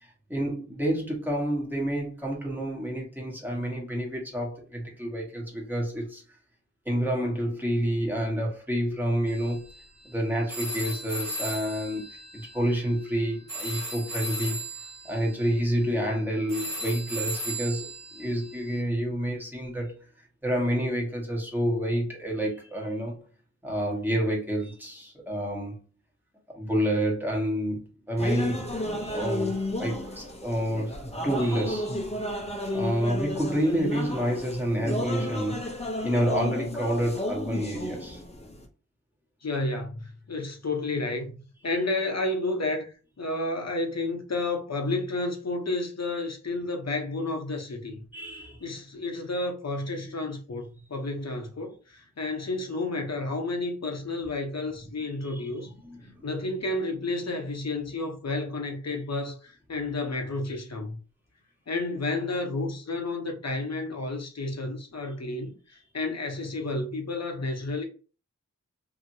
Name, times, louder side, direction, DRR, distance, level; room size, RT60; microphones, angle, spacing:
voice 1, 0.0-6.2 6.8-9.6 10.0-14.6 15.0-20.0 20.4-23.1 23.6-25.8 26.5-28.7 29.0-32.0 32.6-35.7 36.0-38.2 41.6-41.8 48.1-48.7 50.0-50.4 54.7-54.9 55.2-56.5 57.2-57.3 65.7-65.8, equal, 5° right, 1.3 m, -29 dB
sound 1, 9.3-18.8, right 1 dB, 90° right, 1.2 m, -37 dB
sound 2, 28.2-38.6, left 1 dB, 20° left, 0.7 m, -33 dB
voice 2, 39.4-41.4 41.6-42.9 43.2-48.0 48.6-55.7 56.2-61.0 61.7-65.5 65.9-67.8, left 2 dB, 55° left, 0.8 m, -31 dB
2.8 x 2.7 x 2.6 m
wide cardioid pair, 55°, 32 cm